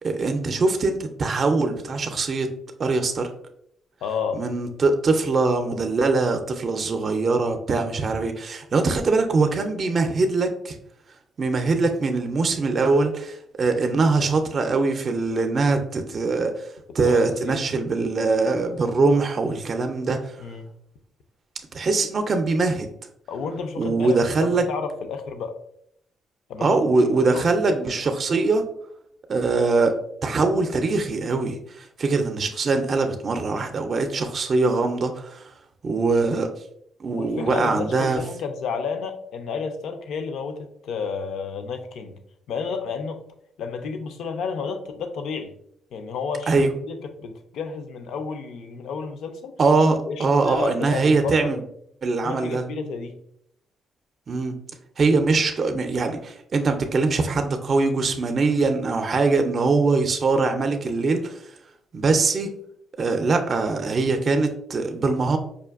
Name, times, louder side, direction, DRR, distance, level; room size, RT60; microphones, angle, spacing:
voice 1, 0.0-2.5 2.8-3.3 4.3-10.8 11.4-16.7 16.9-20.4 21.7-22.9 23.8-24.6 26.6-28.7 29.3-29.9 30.2-35.5 35.8-36.5 37.0-38.2 46.5-46.7 49.6-51.6 52.0-52.6 54.3-54.6 55.0-61.5 61.9-62.5 63.0-65.4, right 3 dB, 45° right, 6 dB, 0.4 m, -22 dB
voice 2, 4.0-4.4 17.0-17.6 20.4-20.7 23.3-25.5 26.5-26.8 27.3-27.7 37.1-42.2 42.5-43.2 43.6-45.5 45.9-46.6 46.8-49.5 50.1-51.6 52.2-53.2, left 5 dB, 75° left, 7 dB, 0.5 m, -31 dB
4.8 x 2.5 x 2.4 m, 0.72 s
cardioid pair, 90°, 0 cm